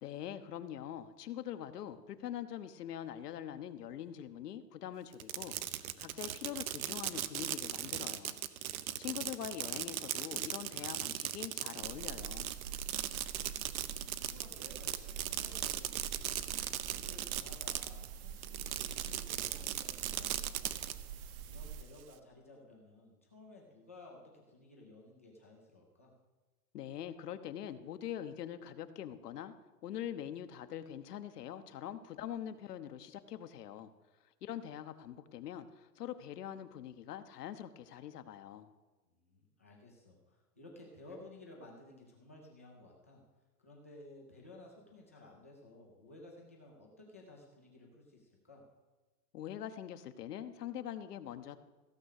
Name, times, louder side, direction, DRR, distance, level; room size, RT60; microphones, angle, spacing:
voice 1, 0.0-8.4 9.0-12.5 26.7-29.5 29.8-33.9 34.4-38.7 49.3-51.6, left 10 dB, 75° left, 9 dB, 1.1 m, -43 dB
Fireworks, 5.1-18.1 18.4-20.9, right 12 dB, 60° right, 0.8 m, -38 dB
sound 1, 11.8-21.8, right 7 dB, 35° right, 0.8 m, -46 dB
voice 2, 13.1-13.7 14.1-16.4 16.9-26.1 39.1-43.2 43.6-48.6, left 2 dB, 10° left, -2 dB, 0.3 m, -56 dB
15.5 x 6.4 x 6.5 m, 1.2 s
hypercardioid pair, 155°, 47 cm